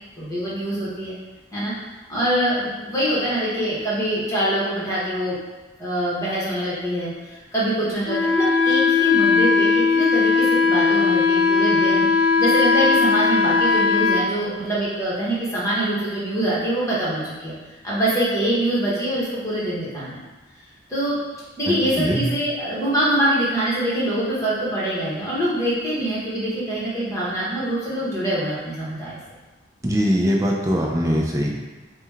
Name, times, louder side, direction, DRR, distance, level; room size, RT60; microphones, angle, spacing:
voice 1, 0.2-1.1 1.5-1.7 2.1-5.4 5.8-12.1 12.4-17.5 17.8-20.2 20.9-21.2 21.6-29.2, right 1 dB, 15° left, -8 dB, 1.1 m, -24 dB
Wind instrument woodwind instrument, 8.1-14.2, left 4 dB, 65° left, 0.4 m, -18 dB
voice 2, 21.7-22.2 29.8-31.6, equal, 15° right, -1 dB, 0.4 m, -22 dB
4.8 x 2.2 x 3.5 m, 1.2 s
head